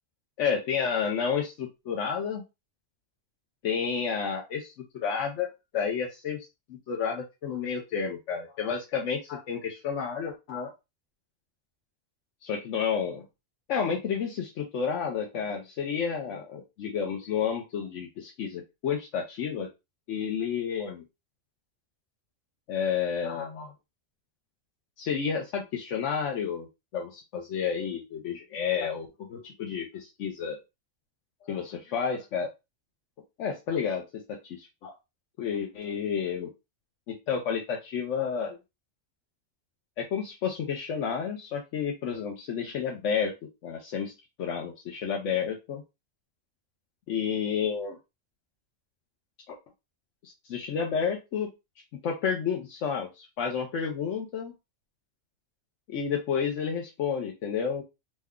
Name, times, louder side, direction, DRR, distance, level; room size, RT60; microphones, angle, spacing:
voice 1, 0.4-2.4 3.6-5.5 5.7-10.7 12.4-13.2 13.7-19.7 20.1-21.0 22.7-23.7 25.0-26.7 26.9-29.4 29.7-29.8 30.2-30.6 31.4-32.5 33.4-34.0 34.4-34.9 35.4-36.5 37.1-38.6 40.0-43.3 43.6-44.1 44.4-45.8 47.1-48.0 49.5-49.6 50.2-51.5 52.0-54.5 55.9-57.8, left 6 dB, 85° left, 0 dB, 1.0 m, -30 dB
3.1 x 2.2 x 3.6 m, 0.24 s
omnidirectional pair, 1.2 m